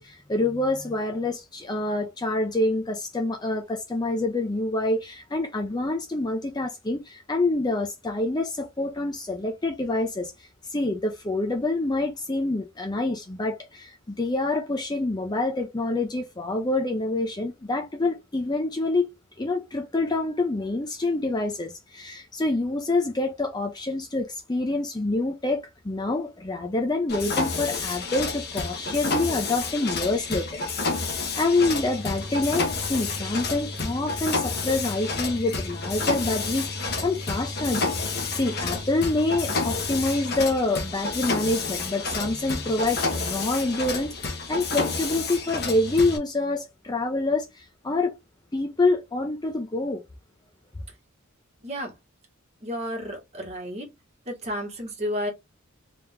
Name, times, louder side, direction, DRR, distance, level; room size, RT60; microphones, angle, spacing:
voice 1, 0.0-19.1 19.4-30.6 31.4-37.9 38.3-48.1 48.5-50.0, left 2 dB, 20° left, 0.5 m, -27 dB
Mechanisms, 27.1-46.2, left 3 dB, 50° left, 1.1 m, -30 dB
voice 2, 51.6-51.9 52.6-53.9 54.2-55.3, equal, 30° right, 1.7 m, -32 dB
3.4 x 2.9 x 3.4 m
head